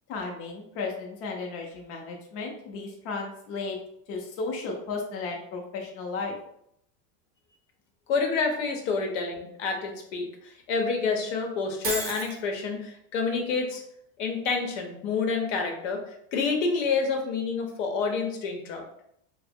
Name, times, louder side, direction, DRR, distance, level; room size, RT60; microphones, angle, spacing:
voice 1, 0.1-3.8 4.1-6.4, left 4 dB, 40° left, 0 dB, 0.5 m, -34 dB
voice 2, 8.1-13.8 14.2-18.8, left 4 dB, 85° left, 3 dB, 0.8 m, -28 dB
Shatter, 11.8-12.4, right 3 dB, 25° right, 0.4 m, -31 dB
2.8 x 2.0 x 3.4 m, 0.72 s
cardioid pair, 155°, 36 cm